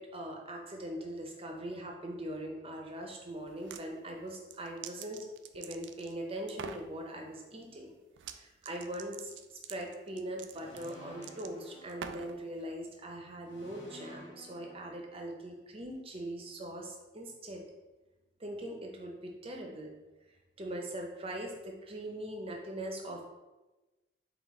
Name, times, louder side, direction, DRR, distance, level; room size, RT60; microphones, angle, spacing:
voice 1, 0.0-5.3 5.5-7.9 8.3-9.3 9.7-17.6 18.4-19.9 20.6-23.3, right 1 dB, 35° right, 1 dB, 0.7 m, -41 dB
sound 1, 3.5-3.9 4.3-6.2 6.5-6.9 8.2-8.4 8.6-12.4, right 7 dB, 90° right, 0.3 m, -46 dB
sound 2, 10.5-12.7 13.4-15.6, equal, 85° left, 1.3 m, -54 dB
4.0 x 3.5 x 3.6 m, 1.1 s
head